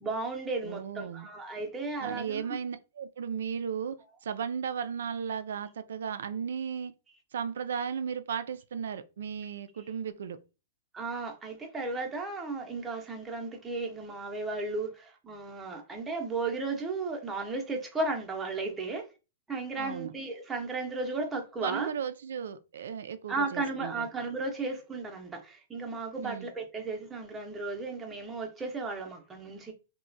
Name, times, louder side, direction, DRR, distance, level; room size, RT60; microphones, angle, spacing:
voice 1, 0.0-2.4 10.9-19.0 19.5-21.9 23.3-29.7, right 3 dB, 15° right, 0.7 m, -34 dB
voice 2, 0.6-1.3 2.0-6.9 7.3-10.4 19.8-20.1 21.6-24.1 26.2-26.5, right 7 dB, 75° right, 0.3 m, -35 dB
3.0 x 2.1 x 2.5 m
hypercardioid pair, 120°, 0 cm